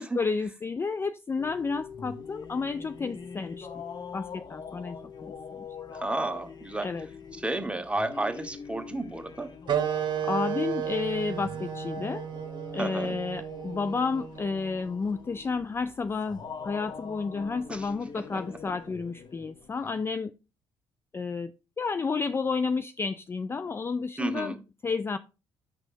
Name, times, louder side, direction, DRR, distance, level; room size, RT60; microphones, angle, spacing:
voice 1, 0.0-3.8 4.1-5.3 6.8-7.1 10.2-12.3 12.7-20.3 21.1-21.5 21.8-24.6 24.8-25.2, left 4 dB, 20° left, 0.3 m, -31 dB
sound 1, 1.4-19.9, left 5 dB, 35° left, 0.8 m, -44 dB
voice 2, 5.9-6.9 7.3-9.5 12.7-13.2 17.7-18.6 24.2-24.6, right 2 dB, 10° right, 1.0 m, -32 dB
sound 2, 9.7-14.8, right 10 dB, 45° right, 1.1 m, -33 dB
9.9 x 6.1 x 2.5 m
figure-of-eight pair, 50°, 12 cm